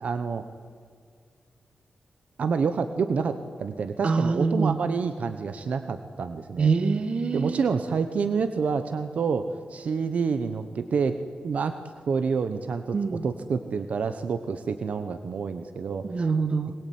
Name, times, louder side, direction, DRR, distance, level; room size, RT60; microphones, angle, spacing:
voice 1, 0.0-0.4 2.4-6.7 7.3-11.2 11.4-11.8 12.1-12.9 13.2-16.0, right 5 dB, 60° right, 9 dB, 1.0 m, -28 dB
voice 2, 4.0-4.8 6.6-7.7 12.9-13.3 16.0-16.7, right 4 dB, 45° right, 9 dB, 1.4 m, -25 dB
22.0 x 20.5 x 9.5 m, 2.1 s
wide cardioid pair, 160°, 3 cm